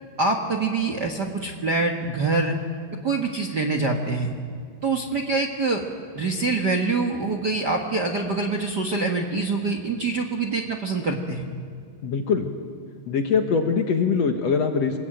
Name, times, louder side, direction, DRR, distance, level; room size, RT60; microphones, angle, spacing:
voice 1, 0.2-2.6 3.0-4.3 4.8-5.8 6.1-11.4, right 3 dB, 45° right, 4 dB, 1.5 m, -25 dB
voice 2, 12.0-12.5 13.1-15.0, left 5 dB, 60° left, 5 dB, 2.1 m, -22 dB
25.5 x 21.5 x 9.1 m, 2.4 s
omnidirectional pair, 4.1 m